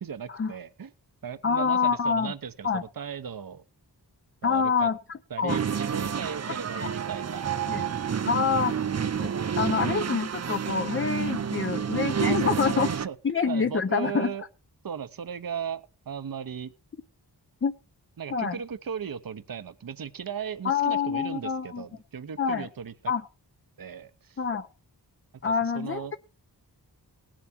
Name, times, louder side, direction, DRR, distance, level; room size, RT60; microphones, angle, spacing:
voice 1, 0.0-0.9 1.2-3.6 4.4-4.9 5.3-7.5 12.2-13.2 13.5-14.4 14.8-16.7 18.2-22.9 23.8-24.4 25.4-26.1, right 7 dB, 55° right, 12 dB, 0.9 m, -36 dB
voice 2, 1.4-2.3 2.6-2.8 4.4-5.6 7.7-7.9 8.2-8.8 9.2-9.3 9.6-12.9 13.2-14.3 17.6-17.7 18.3-18.6 20.6-21.8 22.4-22.7 23.1-23.2 24.4-24.7 25.4-26.2, left 6 dB, 30° left, 9 dB, 0.6 m, -26 dB
sound 1, 5.5-13.1, right 7 dB, 40° right, 0.5 m, -29 dB
18.0 x 7.5 x 4.4 m, 0.31 s
wide cardioid pair, 100°, 41 cm